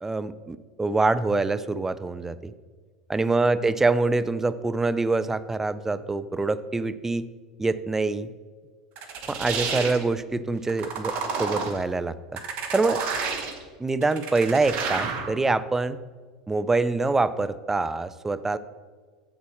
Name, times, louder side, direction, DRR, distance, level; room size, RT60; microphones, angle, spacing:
voice 1, 0.0-2.5 3.1-7.3 7.6-8.3 9.3-12.4 12.7-13.0 13.8-16.0 16.5-18.6, right 3 dB, 10° right, 15 dB, 0.4 m, -25 dB
sound 1, 9.0-10.0 10.7-11.8 12.4-13.6 14.0-15.3, right 5 dB, 50° right, 1.1 m, -30 dB
7.3 x 4.0 x 6.3 m, 1.5 s
hypercardioid pair, 90°, 3 cm